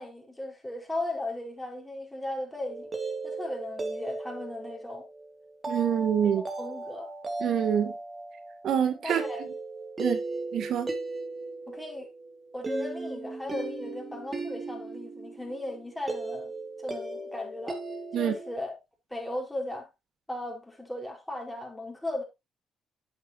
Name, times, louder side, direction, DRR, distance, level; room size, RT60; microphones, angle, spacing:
voice 1, 0.0-2.9 3.2-5.1 6.4-7.1 9.0-9.4 10.0-10.2 11.7-12.1 12.5-16.5 16.8-17.8 18.1-18.8 19.1-19.9 20.3-22.2, left 1 dB, 10° left, 5.2 m, -36 dB
sound 1, 2.7-18.5, right 3 dB, 30° right, 2.8 m, -37 dB
voice 2, 5.7-6.4 7.4-7.9 8.6-9.2 10.0-10.2 10.5-10.9 18.1-18.3, right 8 dB, 70° right, 2.1 m, -26 dB
11.5 x 8.4 x 3.0 m
cardioid pair, 90°, 0 cm